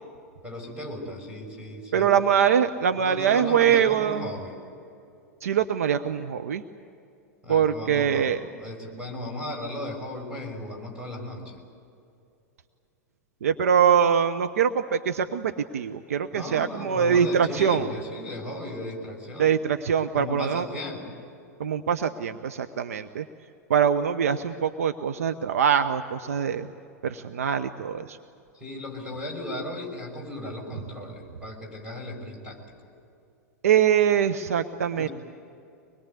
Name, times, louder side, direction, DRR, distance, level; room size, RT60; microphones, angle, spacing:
voice 1, 0.4-2.1 3.0-4.5 7.4-11.6 16.3-19.5 20.1-21.2 28.5-32.6 35.0-35.1, left 1 dB, 10° right, 2 dB, 6.4 m, -36 dB
voice 2, 1.9-4.3 5.4-6.6 7.5-8.4 13.4-17.9 19.4-20.7 21.6-23.2 23.7-26.7 27.0-28.2 33.6-35.1, right 8 dB, 60° right, 8 dB, 0.8 m, -23 dB
24.5 x 21.5 x 8.3 m, 2.6 s
figure-of-eight pair, 95°, 9 cm